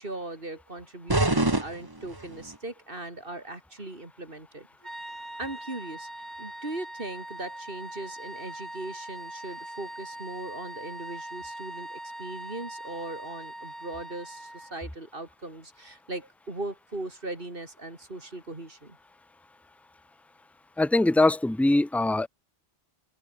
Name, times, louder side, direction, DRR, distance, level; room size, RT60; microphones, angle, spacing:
voice 1, 0.0-4.7 5.4-6.1 6.4-19.0, right 2 dB, 60° right, 4.3 m, -39 dB
sound 1, 1.1-2.6, right 2 dB, 20° right, 1.8 m, -26 dB
sound 2, 4.8-14.8, right 1 dB, 45° right, 6.7 m, -41 dB
voice 2, 20.8-22.3, left 2 dB, ahead, 0.9 m, -22 dB
omnidirectional pair, 1.1 m